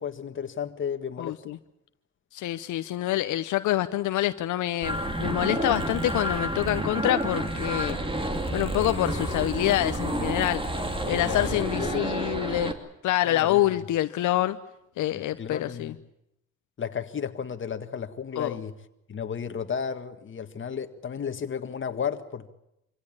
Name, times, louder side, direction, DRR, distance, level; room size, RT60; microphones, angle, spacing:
voice 1, 0.0-1.4 5.5-5.7 11.0-12.2 13.2-13.6 15.1-16.0 16.8-18.8 19.1-22.5, left 7 dB, 40° left, 1.8 m, -33 dB
voice 2, 1.2-1.6 2.3-8.0 8.5-10.6 11.1-12.7 13.0-14.6 15.0-15.9 18.4-18.6, left 14 dB, 80° left, 0.8 m, -26 dB
sound 1, 4.8-12.7, right 1 dB, 15° right, 2.8 m, -30 dB
25.5 x 16.5 x 10.0 m
cardioid pair, 90°, 30 cm